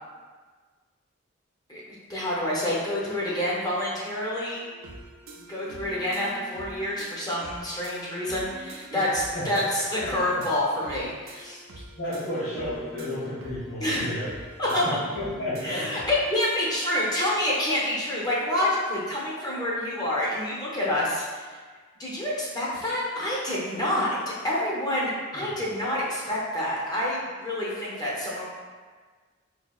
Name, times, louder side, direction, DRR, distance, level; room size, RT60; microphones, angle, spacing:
voice 1, 2.1-4.7 5.5-11.6 13.8-14.0 14.6-15.0 15.6-21.5 22.0-28.4, left 1 dB, 20° left, -6 dB, 0.6 m, -27 dB
sound 1, 4.6-16.8, right 1 dB, 80° right, 0.5 m, -45 dB
voice 2, 10.0-10.4 11.9-14.3 14.6-15.8 25.3-25.4, left 1 dB, 80° left, -12 dB, 1.0 m, -32 dB
4.1 x 2.7 x 2.3 m, 1.5 s
head